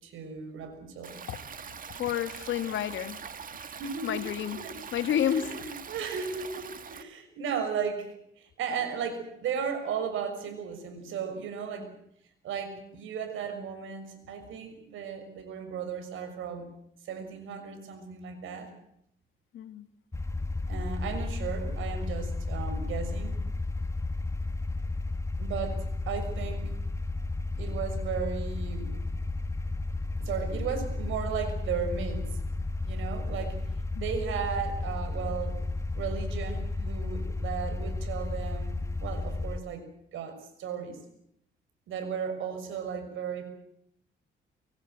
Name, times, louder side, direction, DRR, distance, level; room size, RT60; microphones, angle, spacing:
voice 1, 0.0-1.1 3.8-4.2 4.5-4.7 5.2-11.9 12.4-16.7 17.0-18.7 20.7-23.4 25.4-26.7 27.6-28.9 30.2-32.3 32.8-33.6 34.0-35.6 35.9-41.0 41.9-43.5, right 7 dB, 85° right, 6.5 m, -35 dB
Stream, 1.0-7.0, right 6 dB, 45° right, 1.9 m, -43 dB
voice 2, 2.0-3.2 3.5-3.7 4.0-4.6 4.9-5.7 19.5-19.9 34.0-34.1, left 10 dB, 75° left, 1.8 m, -30 dB
sound 1, 20.1-39.6, left 2 dB, 15° left, 1.2 m, -33 dB
23.5 x 23.0 x 7.9 m
cardioid pair, 90°, 20 cm